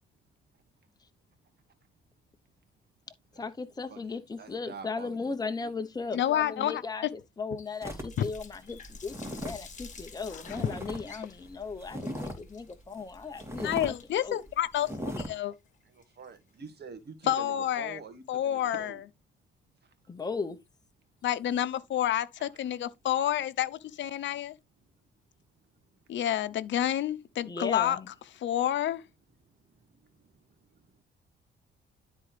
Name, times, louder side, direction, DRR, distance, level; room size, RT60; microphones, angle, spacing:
voice 1, 3.4-13.9 14.2-14.4 20.1-20.6 27.5-28.1, left 4 dB, 20° left, 0.9 m, -37 dB
voice 2, 3.9-5.2 15.8-19.0 19.8-20.1 22.4-22.7 24.9-25.0 25.5-26.2 29.4-31.0, right 5 dB, 55° right, 2.0 m, -48 dB
voice 3, 6.1-7.1 10.3-10.7 13.6-15.5 17.3-18.0 18.3-18.9 21.2-24.6 26.1-28.0 28.4-29.0, left 11 dB, 70° left, 0.8 m, -29 dB
Water tap faucet, 7.6-16.5, left 5 dB, 40° left, 1.8 m, -52 dB
sound 1, 7.8-11.0 11.3-12.5 12.9-13.0 13.4-13.9 14.3-14.5 14.8-15.3, equal, 15° right, 3.2 m, -38 dB
12.5 x 4.2 x 3.4 m
cardioid pair, 90°, 20 cm